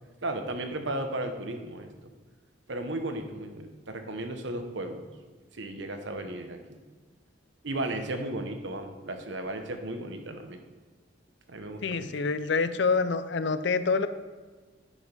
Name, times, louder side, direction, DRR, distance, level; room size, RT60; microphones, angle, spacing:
voice 1, 0.2-1.9 2.7-5.1 5.5-6.8 7.6-10.6 11.5-12.1, right 1 dB, 70° right, 6 dB, 1.0 m, -35 dB
voice 2, 11.8-14.1, left 4 dB, 65° left, 12 dB, 0.5 m, -26 dB
9.7 x 5.0 x 5.3 m, 1.4 s
head